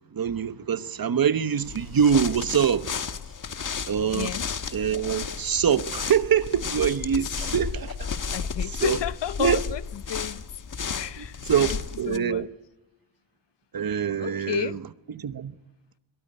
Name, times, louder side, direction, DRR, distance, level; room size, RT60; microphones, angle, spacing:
voice 1, 0.1-2.9 3.9-4.3 4.7-7.9 8.8-9.0 9.4-9.6 11.2-12.5 13.7-14.8 15.1-15.5, right 8 dB, 45° right, 1.1 m, -24 dB
sound 1, 1.6-12.2, left 6 dB, 40° left, 1.3 m, -33 dB
voice 2, 4.1-4.5 7.2-7.4 8.3-10.4 10.9-11.8 12.1-12.5 14.2-14.8, left 10 dB, 60° left, 0.8 m, -32 dB
22.5 x 19.5 x 9.9 m
wide cardioid pair, 170°, 48 cm